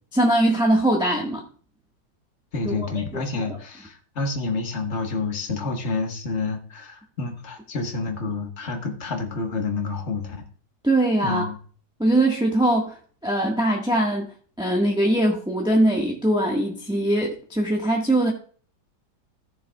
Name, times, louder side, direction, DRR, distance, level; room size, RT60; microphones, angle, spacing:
voice 1, 0.1-1.4 2.6-2.9 10.8-11.5 12.0-14.3 14.6-18.3, right 1 dB, 5° right, -2 dB, 1.3 m, -21 dB
voice 2, 2.5-10.4 11.2-11.6, left 3 dB, 45° left, 3 dB, 1.6 m, -29 dB
15.5 x 6.9 x 2.3 m, 0.43 s
omnidirectional pair, 1.8 m